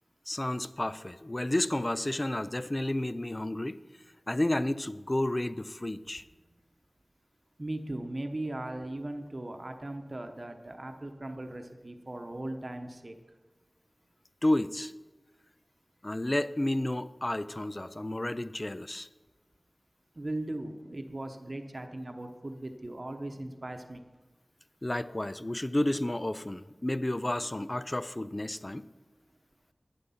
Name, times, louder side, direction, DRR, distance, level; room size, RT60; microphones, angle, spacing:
voice 1, 0.3-3.8 4.3-6.2 14.4-14.9 16.0-19.1 24.8-28.9, left 1 dB, 30° left, 0.4 m, -31 dB
voice 2, 7.6-13.4 20.2-24.1, right 1 dB, 45° right, 0.9 m, -38 dB
11.5 x 8.4 x 5.7 m
wide cardioid pair, 65°, 0 cm